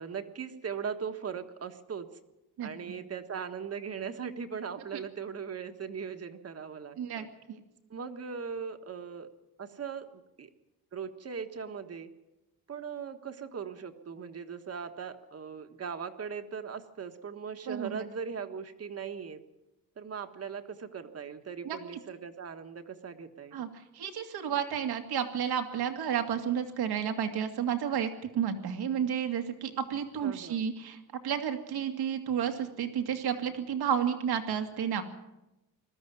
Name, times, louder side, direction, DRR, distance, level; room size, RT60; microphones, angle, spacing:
voice 1, 0.0-2.1 2.6-7.3 7.9-9.3 9.6-10.5 10.9-12.1 12.7-19.4 20.0-23.6 30.2-30.6, right 6 dB, 40° right, 7 dB, 1.5 m, -39 dB
voice 2, 7.0-7.6 17.7-18.0 21.6-21.8 23.5-23.7 23.9-31.0 31.2-35.0, right 8 dB, 85° right, 5 dB, 2.3 m, -31 dB
21.0 x 13.5 x 9.5 m, 0.98 s
cardioid pair, 135°, 37 cm